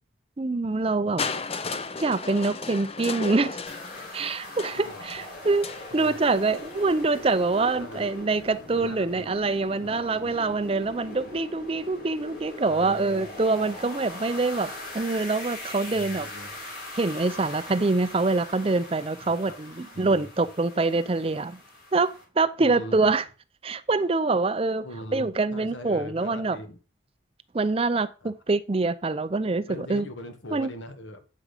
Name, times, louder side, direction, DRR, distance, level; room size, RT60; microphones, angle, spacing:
voice 1, 0.4-1.2 2.0-3.6 4.1-16.3 17.0-21.6 21.9-23.2 23.6-24.8 25.1-26.6 27.5-30.0 30.5-30.7, right 3 dB, 30° right, 0.5 m, -25 dB
Crushing, 1.2-7.1 8.0-8.1, left 4 dB, 30° left, 0.6 m, -35 dB
sound 1, 3.7-22.2, left 1 dB, 50° left, 3.5 m, -41 dB
voice 2, 4.7-5.5 5.9-6.3 7.8-8.1 8.7-9.3 9.8-10.5 12.6-13.7 15.9-16.5 19.2-19.6 19.9-20.3 22.6-23.2 24.8-26.8 28.2-28.3 29.7-31.3, left 1 dB, 70° left, 1.5 m, -42 dB
8.6 x 6.2 x 5.0 m
head